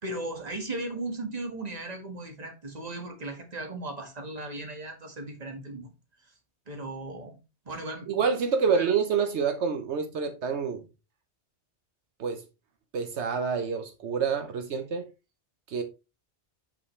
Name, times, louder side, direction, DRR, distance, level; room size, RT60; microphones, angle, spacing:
voice 1, 0.0-5.9 6.7-7.3 7.6-8.3 8.7-8.9, right 2 dB, 35° right, 1.6 m, -37 dB
voice 2, 8.1-10.8 12.2-12.4 12.9-15.1 15.7-15.8, right 6 dB, 80° right, 1.1 m, -27 dB
6.9 x 5.6 x 3.2 m
omnidirectional pair, 1.1 m